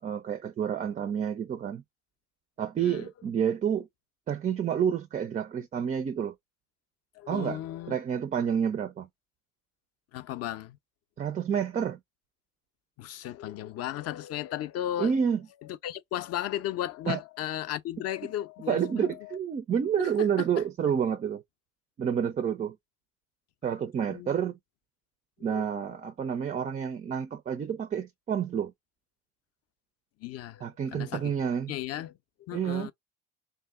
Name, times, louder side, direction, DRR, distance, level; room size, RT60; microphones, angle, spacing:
voice 1, 0.0-1.8 2.6-3.9 4.3-6.3 7.3-7.6 7.9-9.1 11.2-12.0 15.0-15.4 17.1-17.2 18.7-21.4 22.0-22.8 23.6-24.5 25.4-28.7 30.6-31.7 32.5-32.9, right 8 dB, 25° right, 0.4 m, -29 dB
voice 2, 2.8-3.1 7.2-8.0 10.1-10.8 13.0-15.1 15.6-19.4 20.0-20.1 24.1-24.3 25.4-25.7 30.2-31.3 31.7-32.9, left 12 dB, 45° left, 0.5 m, -35 dB
2.7 x 2.2 x 3.5 m
hypercardioid pair, 70°, 37 cm